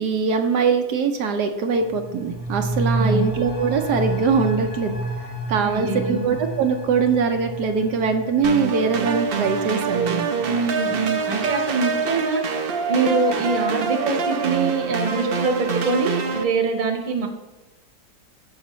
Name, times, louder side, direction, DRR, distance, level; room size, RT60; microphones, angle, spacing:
voice 1, 0.0-5.0 5.5-10.3, right 5 dB, 75° right, 4 dB, 1.3 m, -22 dB
sound 1, 1.7-11.1 11.5-11.6, right 2 dB, 40° left, 2.0 m, -30 dB
voice 2, 2.9-3.3 5.6-6.2 10.4-17.3, right 4 dB, 30° right, 3 dB, 1.1 m, -24 dB
sound 2, 8.4-16.4, right 5 dB, 55° right, 0.6 m, -25 dB
14.0 x 4.9 x 3.1 m, 1.1 s
omnidirectional pair, 1.8 m